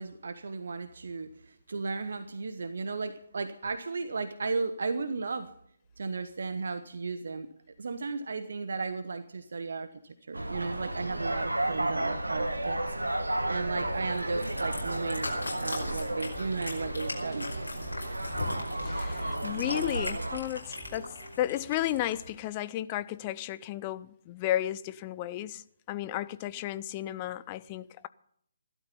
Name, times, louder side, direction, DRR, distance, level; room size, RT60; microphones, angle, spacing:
voice 1, 0.0-5.5 6.0-7.5 7.8-12.8 13.5-15.3 15.6-17.5, right 4 dB, 55° right, 1.1 m, -35 dB
sound 1, 10.3-20.4, right 1 dB, 75° right, 1.6 m, -33 dB
sound 2, 13.4-21.3, equal, 5° right, 4.4 m, -49 dB
Cat, 14.1-22.3, left 2 dB, 65° left, 5.1 m, -40 dB
voice 2, 18.8-28.1, left 13 dB, 25° left, 0.6 m, -33 dB
16.0 x 12.5 x 5.6 m
figure-of-eight pair, 140°, 0 cm